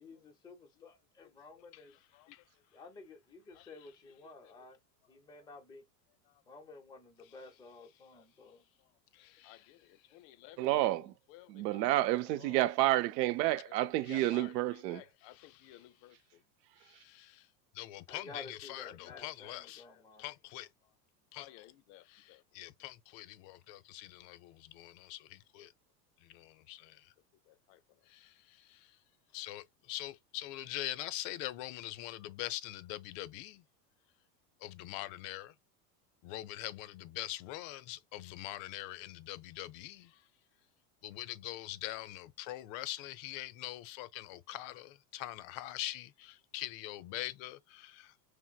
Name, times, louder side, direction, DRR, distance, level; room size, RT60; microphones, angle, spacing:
voice 1, 0.0-2.0 2.7-4.8 5.1-5.8 6.5-8.6 10.1-10.2 18.1-20.2, left 3 dB, 10° left, 0.6 m, -52 dB
voice 2, 1.7-2.4 3.5-4.0 4.4-4.5 7.2-7.5 7.8-7.9 8.5-8.6 9.1-12.6 13.4-13.6 14.0-16.2 16.8-17.5 17.7-20.7 21.3-25.7 26.2-27.1 27.5-29.0 29.3-33.6 34.6-35.5 36.2-40.3 41.0-48.2, left 15 dB, 55° left, 0.5 m, -44 dB
voice 3, 10.6-11.1 11.5-15.0, right 15 dB, 80° right, 0.5 m, -30 dB
5.5 x 2.1 x 2.2 m
hypercardioid pair, 105°, 49 cm